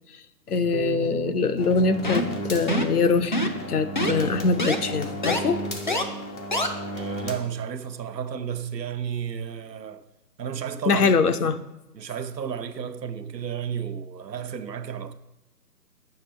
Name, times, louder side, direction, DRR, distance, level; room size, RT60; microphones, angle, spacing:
voice 1, 0.5-5.6 10.9-11.6, left 4 dB, 60° left, 0.8 m, -23 dB
Harp, 0.7-6.8, left 1 dB, 35° right, 0.5 m, -40 dB
sound 1, 1.6-7.4, right 1 dB, 80° left, 2.3 m, -34 dB
sound 2, 2.0-2.4 2.7-3.0 3.3-3.6 4.0-4.1 4.6-4.8 5.2-5.4 5.9-6.0 6.5-6.7, left 1 dB, 30° left, 0.5 m, -24 dB
voice 2, 6.9-10.1 10.4-11.1 11.9-15.1, right 8 dB, 75° right, 0.8 m, -32 dB
6.7 x 6.1 x 4.4 m
figure-of-eight pair, 150°, 50 cm